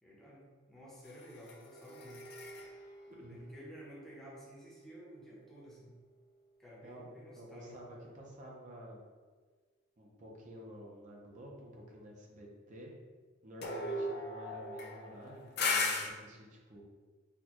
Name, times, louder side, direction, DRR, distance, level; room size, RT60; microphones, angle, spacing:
voice 1, 0.0-2.3 3.2-6.0 6.6-7.8 13.6-14.0, equal, ahead, -7 dB, 0.7 m, -53 dB
sound 1, 1.1-4.5 13.6-16.1, left 3 dB, 50° left, 0.4 m, -38 dB
voice 2, 3.1-3.4 6.8-9.0 10.0-12.9 13.4-16.8, equal, 35° right, -2 dB, 0.6 m, -51 dB
4.2 x 2.2 x 2.9 m, 1.4 s
head